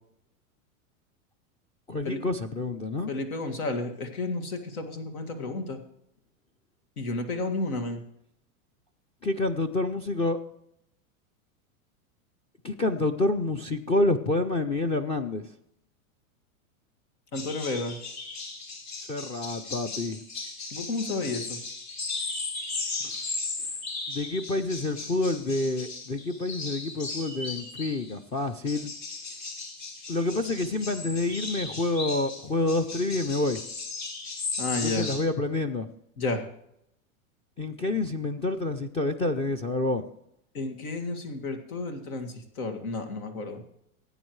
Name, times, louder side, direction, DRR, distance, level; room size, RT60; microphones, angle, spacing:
voice 1, 1.9-3.1 9.2-10.4 12.6-15.4 19.1-20.2 23.0-23.3 24.1-28.9 30.1-33.6 34.8-35.9 37.6-40.0, left 2 dB, 15° left, 7 dB, 0.3 m, -28 dB
voice 2, 3.1-5.8 7.0-8.0 17.3-18.0 20.7-21.6 34.6-35.1 36.2-36.4 40.5-43.6, left 2 dB, 90° left, 6 dB, 2.1 m, -32 dB
sound 1, 17.3-28.1 28.6-35.2, left 3 dB, 75° left, 4.0 m, -36 dB
17.0 x 8.8 x 3.2 m, 0.75 s
supercardioid pair, 125°, 42 cm